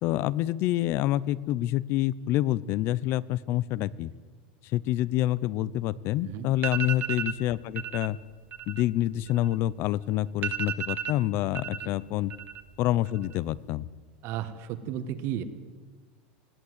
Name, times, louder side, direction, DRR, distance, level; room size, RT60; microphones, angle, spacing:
voice 1, 0.0-4.1 4.7-8.2 8.7-12.3 12.8-13.9, left 14 dB, 45° left, 20 dB, 0.7 m, -27 dB
sound 1, 6.1-6.2 6.5-7.4 7.8-8.1 8.4-9.8 10.1-10.2 10.4-11.9 12.2-12.8 13.1-13.6, right 10 dB, 35° right, 1.4 m, -34 dB
voice 2, 14.2-15.4, right 10 dB, 50° right, 10 dB, 1.7 m, -34 dB
20.5 x 17.0 x 8.2 m, 1.4 s
supercardioid pair, 145°, 6 cm